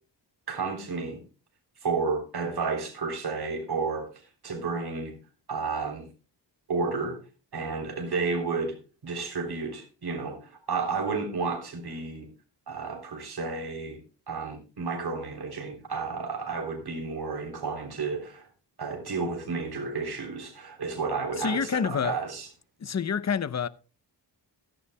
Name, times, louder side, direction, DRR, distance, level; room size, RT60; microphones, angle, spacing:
voice 1, 0.5-1.2 1.8-4.1 4.4-5.1 5.5-6.1 6.7-7.2 7.5-8.8 9.0-12.3 12.7-18.5 18.8-22.5, right 4 dB, 60° right, 3.4 m, -31 dB
voice 2, 21.4-22.2 22.8-23.7, left 6 dB, 40° left, 0.7 m, -27 dB
15.5 x 12.5 x 2.2 m
wide cardioid pair, 115°, 43 cm